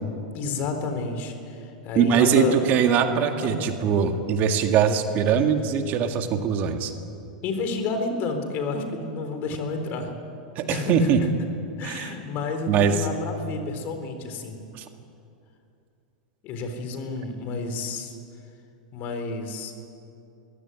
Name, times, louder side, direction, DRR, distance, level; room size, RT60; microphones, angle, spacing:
voice 1, 0.3-2.6 3.1-3.7 7.4-10.1 10.7-11.3 11.8-14.6 16.4-18.1 18.9-19.7, left 3 dB, 45° left, 6 dB, 4.0 m, -30 dB
voice 2, 2.0-6.9 10.6-11.2 11.8-12.1 12.7-13.0 14.7-14.8, right 7 dB, 45° right, 6 dB, 2.0 m, -22 dB
22.0 x 16.0 x 9.9 m, 2.6 s
hypercardioid pair, 105°, 4 cm